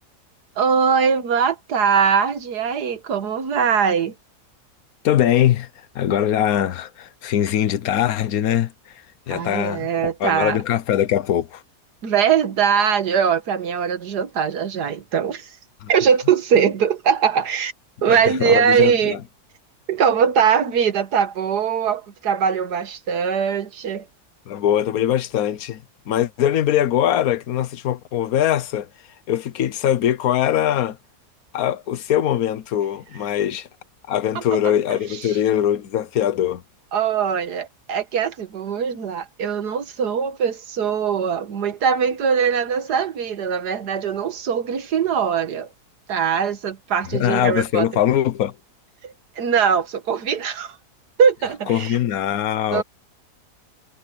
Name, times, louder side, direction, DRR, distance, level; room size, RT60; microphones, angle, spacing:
voice 1, 0.6-4.1 9.3-10.6 12.0-15.6 15.9-17.7 18.0-19.2 19.9-24.1 34.4-34.5 35.3-35.4 36.9-45.7 46.1-47.9 49.0-50.8 51.2-52.0 52.7-52.8, right 7 dB, 80° right, 1.9 m, -21 dB
voice 2, 5.0-5.7 5.9-8.7 9.3-11.6 15.8-15.9 18.1-19.2 24.5-28.9 29.3-31.0 31.5-33.7 34.1-36.6 47.1-48.5 51.7-52.8, left 11 dB, 65° left, 1.3 m, -21 dB
omnidirectional pair, 1.7 m